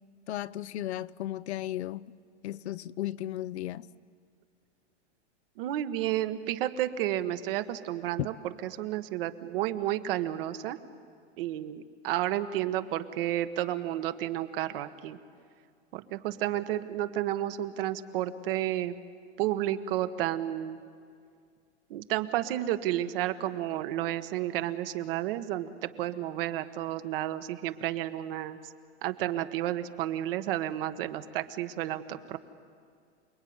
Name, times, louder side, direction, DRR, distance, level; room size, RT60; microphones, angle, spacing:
voice 1, 0.3-2.1 2.4-3.9 8.2-8.3, left 14 dB, 70° left, 0.8 m, -35 dB
voice 2, 5.6-10.8 11.4-15.2 15.9-19.0 19.4-20.8 21.9-28.6 29.0-32.4, right 13 dB, 55° right, 1.5 m, -31 dB
28.5 x 20.5 x 9.6 m
supercardioid pair, 155°, 35 cm